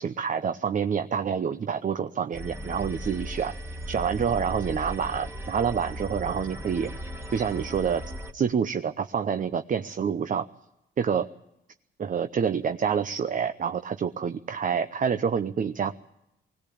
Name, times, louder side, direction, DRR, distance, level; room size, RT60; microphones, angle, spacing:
voice 1, 0.0-3.5 3.9-6.9 7.3-8.0 8.3-10.5 11.0-11.3 12.0-16.0, right 7 dB, 40° right, 9 dB, 0.8 m, -27 dB
sound 1, 2.3-8.3, equal, 10° right, 1.9 m, -37 dB
21.0 x 17.5 x 8.6 m, 0.87 s
cardioid pair, 90°, 20 cm